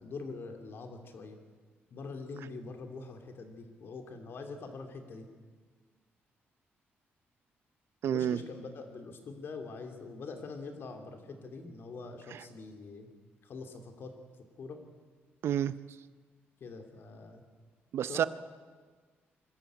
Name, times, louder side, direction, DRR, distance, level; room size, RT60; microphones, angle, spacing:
voice 1, 0.0-1.4 1.9-5.3 8.0-13.1 13.4-14.1 14.6-14.8 16.6-17.4 18.1-18.3, left 4 dB, 60° left, 6 dB, 2.8 m, -44 dB
voice 2, 8.0-8.4 12.3-12.4 15.4-15.7 17.9-18.3, right 10 dB, 70° right, 15 dB, 0.6 m, -29 dB
23.0 x 13.0 x 9.0 m, 1.5 s
cardioid pair, 110°, 4 cm